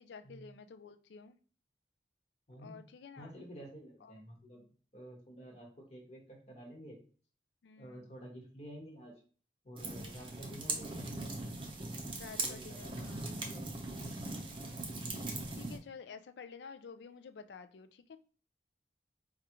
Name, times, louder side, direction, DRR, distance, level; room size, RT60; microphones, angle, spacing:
voice 1, 0.0-1.4 2.6-3.5 4.0-4.1 4.5-4.7 7.6-8.1 12.2-13.5 14.7-15.0 15.6-18.2, left 5 dB, 70° left, 0.3 m, -51 dB
voice 2, 2.5-2.8 3.2-4.6 4.9-7.0 7.8-9.1 9.6-11.3 12.4-13.7, equal, 40° left, 1.1 m, -50 dB
sound 1, 9.8-15.8, right 2 dB, 30° right, 0.6 m, -40 dB
4.7 x 2.4 x 2.8 m
head